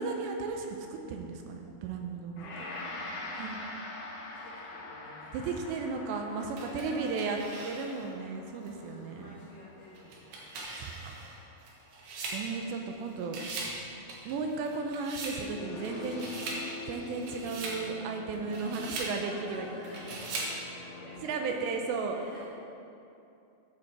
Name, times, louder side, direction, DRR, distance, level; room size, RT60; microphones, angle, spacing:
voice 1, 0.0-2.6 3.3-3.7 5.3-7.4 7.6-9.3 10.8-11.4 12.3-13.4 14.3-19.7 21.2-22.4, right 4 dB, 80° right, 3 dB, 2.7 m, -35 dB
Gong, 2.4-11.6, left 2 dB, 70° left, 2.9 m, -45 dB
voice 2, 2.4-3.3 4.3-7.6 8.9-10.4 18.2-22.5, left 1 dB, 50° left, -14 dB, 3.8 m, -50 dB
sound 1, 6.6-8.1 8.7-8.8 10.0-13.0 13.2-13.8 14.1-15.4 15.8-16.6 17.1-17.8 18.3-19.1 19.8-20.6, right 3 dB, 65° right, 2.9 m, -40 dB
sound 2, 15.3-21.3, left 3 dB, 90° left, 3.1 m, -44 dB
14.0 x 4.9 x 4.7 m, 2.7 s
omnidirectional pair, 5.3 m